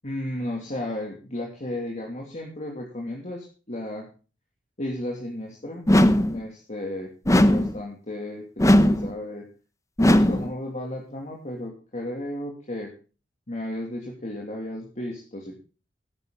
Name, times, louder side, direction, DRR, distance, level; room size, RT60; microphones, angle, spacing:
voice 1, 0.0-4.1 4.8-5.9 6.2-7.1 7.4-9.5 10.1-12.9 13.5-15.6, left 1 dB, 40° left, 0 dB, 2.8 m, -34 dB
sound 1, 5.9-6.4 7.3-7.8 8.6-9.1 10.0-10.5, left 1 dB, 15° left, 1.0 m, -18 dB
13.5 x 12.0 x 3.9 m, 0.36 s
head